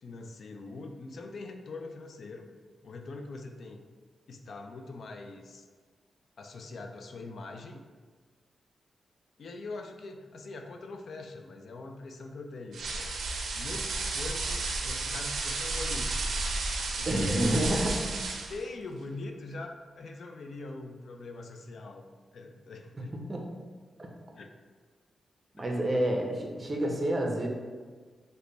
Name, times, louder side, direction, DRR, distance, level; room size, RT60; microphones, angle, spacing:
voice 1, 0.0-2.5 2.8-3.8 4.3-5.7 6.4-7.8 9.4-13.2 13.5-16.3 16.9-18.0 18.5-22.1 22.3-23.1 24.4-24.5, left 3 dB, 65° left, 4 dB, 0.3 m, -42 dB
sound 1, 12.7-18.6, right 3 dB, 80° right, 0.4 m, -32 dB
voice 2, 17.0-17.9 23.0-23.5 25.5-27.5, right 1 dB, 30° right, 0 dB, 0.6 m, -29 dB
3.2 x 2.1 x 3.8 m, 1.5 s
cardioid pair, 85°, 0 cm